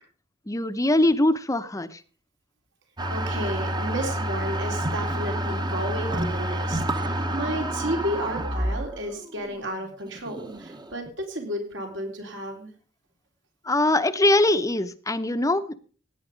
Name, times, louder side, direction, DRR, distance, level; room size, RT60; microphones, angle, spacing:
voice 1, 0.5-2.0 13.6-15.8, left 1 dB, 15° left, 11 dB, 0.8 m, -22 dB
sound 1, 3.0-11.1, right 1 dB, 25° right, 1.1 m, -29 dB
voice 2, 3.1-12.7, right 1 dB, 70° right, 3 dB, 3.9 m, -32 dB
17.0 x 9.5 x 5.1 m, 0.40 s
head